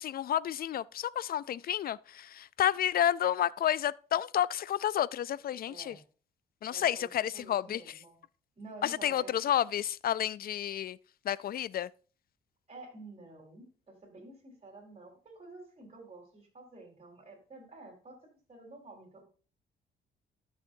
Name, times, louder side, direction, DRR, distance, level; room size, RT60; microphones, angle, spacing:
voice 1, 0.0-5.9 6.6-7.8 8.8-11.0 11.3-11.9, left 11 dB, 50° left, 0.4 m, -30 dB
voice 2, 5.7-6.0 6.7-7.1 7.3-8.2 8.6-9.4 12.7-18.2 18.5-19.2, right 2 dB, 30° right, 4.1 m, -50 dB
13.5 x 6.5 x 2.7 m
cardioid pair, 90°, 20 cm